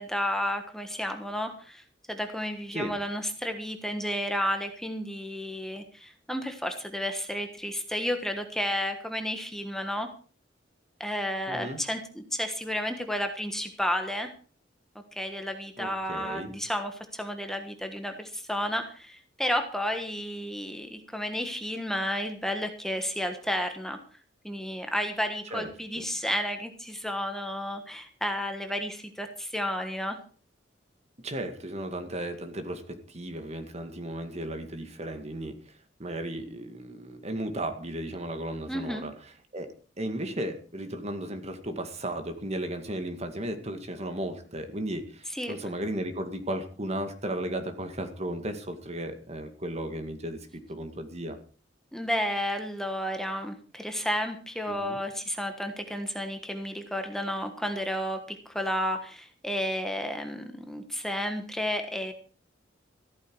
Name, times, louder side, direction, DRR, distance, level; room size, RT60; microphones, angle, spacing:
voice 1, 0.0-10.1 11.0-14.3 15.1-24.0 24.4-30.2 38.7-39.0 45.3-45.5 51.9-62.1, equal, ahead, 5 dB, 1.3 m, -32 dB
voice 2, 11.5-11.8 15.8-16.5 25.5-26.0 31.2-51.4 54.7-55.0, right 1 dB, 35° right, 7 dB, 2.1 m, -35 dB
15.0 x 13.0 x 4.8 m, 0.40 s
head